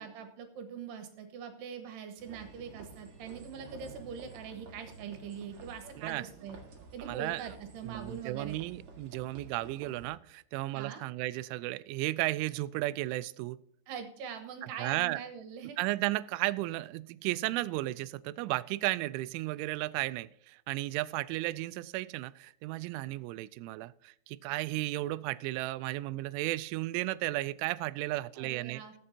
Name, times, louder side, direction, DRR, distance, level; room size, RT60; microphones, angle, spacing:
voice 1, 0.0-6.6 6.9-8.6 10.7-11.0 13.9-15.8 28.4-28.9, right 7 dB, 70° right, 7 dB, 3.2 m, -43 dB
sound 1, 2.2-10.1, right 4 dB, 50° right, 2.4 m, -51 dB
voice 2, 7.1-7.4 7.9-13.6 14.6-15.2 15.8-28.8, right 18 dB, 85° right, 16 dB, 3.0 m, -34 dB
20.5 x 7.7 x 2.8 m, 0.71 s
omnidirectional pair, 5.5 m